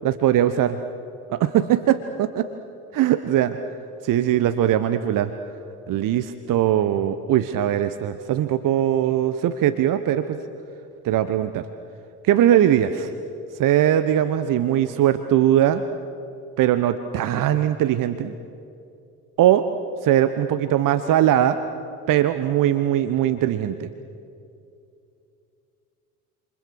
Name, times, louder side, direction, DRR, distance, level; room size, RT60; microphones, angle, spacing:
voice 1, 0.0-0.8 1.3-2.5 2.9-3.6 4.0-5.3 5.9-10.4 11.0-11.6 12.3-13.1 13.6-15.8 16.6-18.3 19.4-19.7 20.0-21.6 22.1-23.9, right 11 dB, 45° right, 11 dB, 1.1 m, -20 dB
28.0 x 28.0 x 6.5 m, 2.6 s
figure-of-eight pair, 55°, 45 cm